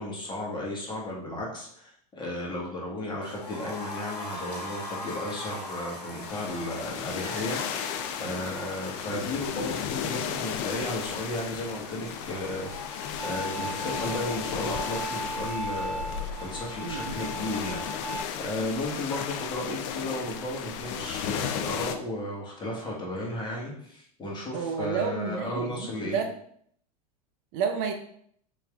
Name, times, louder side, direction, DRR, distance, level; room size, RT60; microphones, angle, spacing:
voice 1, 0.0-26.2, left 1 dB, 20° left, -3 dB, 1.4 m, -34 dB
sound 1, 3.2-19.1 19.3-19.4 19.7-19.8, left 2 dB, 90° left, 1.0 m, -43 dB
sound 2, 6.2-22.0, left 8 dB, 55° left, 0.5 m, -34 dB
Bowed string instrument, 13.2-18.2, right 1 dB, 65° right, 1.0 m, -37 dB
voice 2, 16.8-17.1 24.5-26.3 27.5-27.9, right 6 dB, 50° right, 6 dB, 0.5 m, -30 dB
4.2 x 3.2 x 2.4 m, 0.65 s
hypercardioid pair, 90°, 20 cm